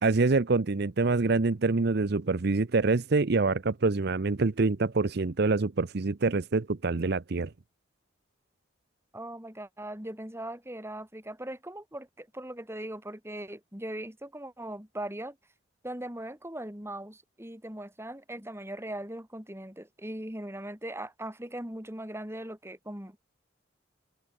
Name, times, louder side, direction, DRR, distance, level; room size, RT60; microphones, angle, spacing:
voice 1, 0.0-7.5, right 3 dB, 55° right, 0.7 m, -26 dB
voice 2, 9.1-15.4 15.8-23.2, right 1 dB, 15° right, 4.1 m, -39 dB
open air
head